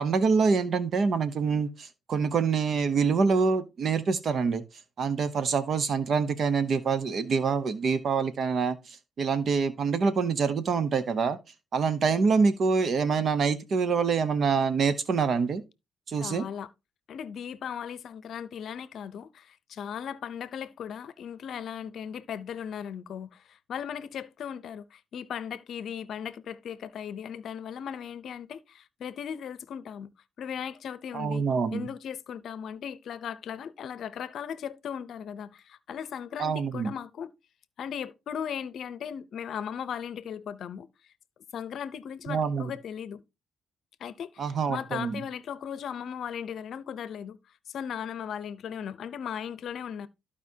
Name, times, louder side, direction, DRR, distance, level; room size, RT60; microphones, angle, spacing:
voice 1, 0.0-4.6 5.0-11.4 11.7-15.6 16.1-16.5 31.1-31.9 36.4-36.9 42.3-42.7 44.4-45.2, right 5 dB, 55° right, 0.8 m, -26 dB
voice 2, 16.2-16.7 17.1-30.1 30.4-31.5 31.7-37.3 37.8-40.9 41.5-43.2 44.0-47.4 47.7-50.1, left 8 dB, 65° left, 0.6 m, -37 dB
14.5 x 4.9 x 2.8 m
cardioid pair, 90°, 0 cm